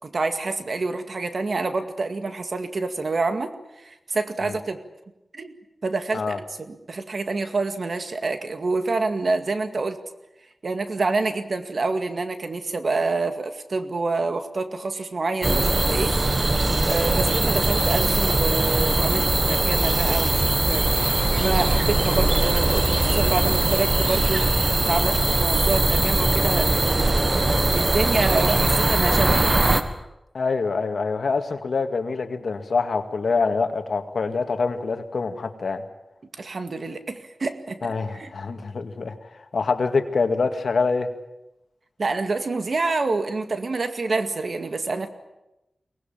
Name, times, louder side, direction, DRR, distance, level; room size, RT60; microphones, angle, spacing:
voice 1, 0.0-4.8 5.3-5.5 5.8-6.3 6.7-10.0 10.6-16.2 16.9-24.5 24.9-29.6 36.4-38.3 42.0-45.1, right 3 dB, 60° right, 8 dB, 2.1 m, -27 dB
sound 1, 15.4-29.8, right 2 dB, 40° right, 1.7 m, -21 dB
voice 2, 30.3-35.8 37.8-41.1, left 4 dB, 75° left, 7 dB, 2.1 m, -25 dB
23.5 x 19.0 x 8.9 m, 0.93 s
wide cardioid pair, 90°, 0 cm